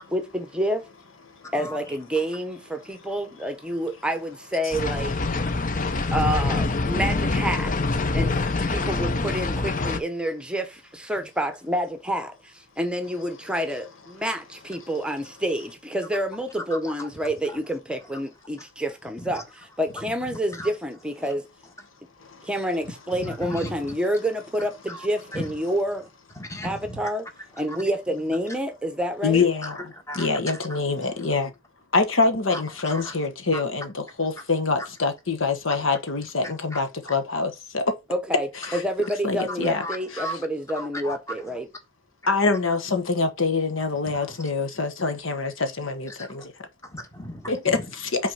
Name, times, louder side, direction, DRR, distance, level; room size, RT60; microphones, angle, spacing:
voice 1, 0.1-0.9 1.5-5.1 6.1-7.7 8.1-21.4 22.4-26.1 26.6-27.2 27.6-29.5 38.1-41.7, right 1 dB, 5° right, 0.9 m, -28 dB
voice 2, 1.5-1.9 16.7-17.1 19.2-19.4 20.1-20.2 20.5-20.7 22.9-23.0 23.2-23.9 24.9-25.1 25.3-25.5 26.4-27.1 27.7-27.8 29.6-30.4 30.7-30.8 32.5-33.2 33.5-33.6 34.2-34.3 35.8-35.9 36.4-36.8 39.8-40.4 40.7-41.2 44.1-44.3 46.1-46.5 46.8-47.9, left 1 dB, 15° left, 1.4 m, -36 dB
sound 1, 4.7-10.0, left 3 dB, 40° left, 0.6 m, -25 dB
voice 3, 29.2-29.8 30.1-31.5 31.9-38.0 38.7-38.8 39.2-39.8 42.3-46.5 47.5-48.3, left 4 dB, 85° left, 1.2 m, -25 dB
6.0 x 4.2 x 5.7 m
head